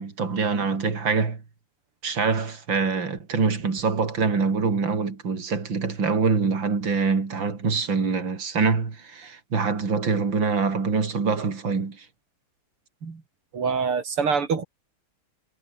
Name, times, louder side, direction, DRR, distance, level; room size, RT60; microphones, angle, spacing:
voice 1, 0.0-1.4 2.0-12.1 13.0-13.2, right 5 dB, 60° right, 4.1 m, -25 dB
voice 2, 13.5-14.6, right 5 dB, 85° right, 3.7 m, -24 dB
omnidirectional pair, 2.4 m